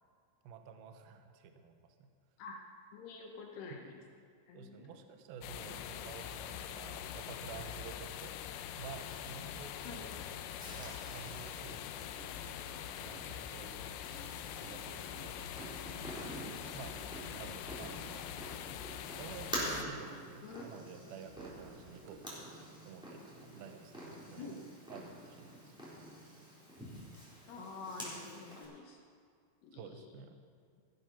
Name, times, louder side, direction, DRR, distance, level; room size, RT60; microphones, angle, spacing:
voice 1, 0.4-2.1 4.5-8.4 8.8-10.2 10.7-14.0 14.6-16.4 16.7-17.0 17.4-18.3 19.1-22.5 22.8-24.6 24.9-25.7 29.7-30.4, right 6 dB, 90° right, 7 dB, 2.1 m, -51 dB
voice 2, 2.9-4.0 4.5-5.0 9.8-10.1 20.4-20.7 24.4-24.6 27.5-29.0 29.6-30.0, left 4 dB, 75° left, 1 dB, 2.6 m, -47 dB
sound 1, 5.4-19.8, left 10 dB, 90° left, 3.1 m, -44 dB
sound 2, 8.6-22.2, right 4 dB, 70° right, 2.8 m, -59 dB
Purr, 10.6-28.6, equal, ahead, 2.5 m, -47 dB
15.5 x 9.2 x 5.9 m, 2.2 s
omnidirectional pair, 5.5 m